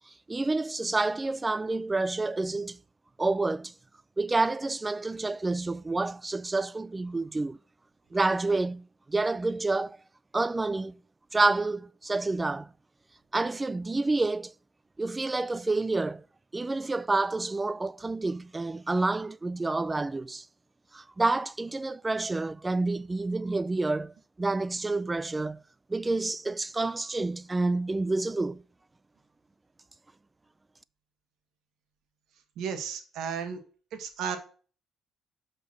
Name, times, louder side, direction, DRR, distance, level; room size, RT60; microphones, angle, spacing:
voice 1, 0.1-2.8 3.2-3.7 4.2-7.6 8.1-10.0 10.3-10.9 11.3-12.7 13.3-14.5 15.0-16.2 16.5-20.5 20.9-25.6 25.9-28.6, right 3 dB, 20° right, 0.4 m, -28 dB
voice 2, 32.6-33.6 33.9-34.4, right 7 dB, 85° right, 1.5 m, -33 dB
6.2 x 5.2 x 5.9 m
cardioid pair, 90°, 0 cm